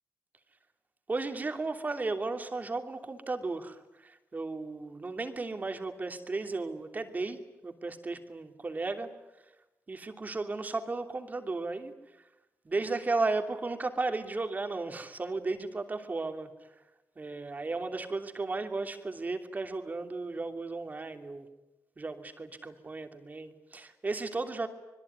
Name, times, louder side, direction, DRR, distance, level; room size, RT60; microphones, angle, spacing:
voice 1, 1.1-9.1 9.9-11.9 12.6-16.5 17.2-21.5 22.0-24.7, right 3 dB, 35° right, 6 dB, 3.0 m, -34 dB
26.0 x 21.5 x 9.6 m, 1.0 s
cardioid pair, 80°, 5 cm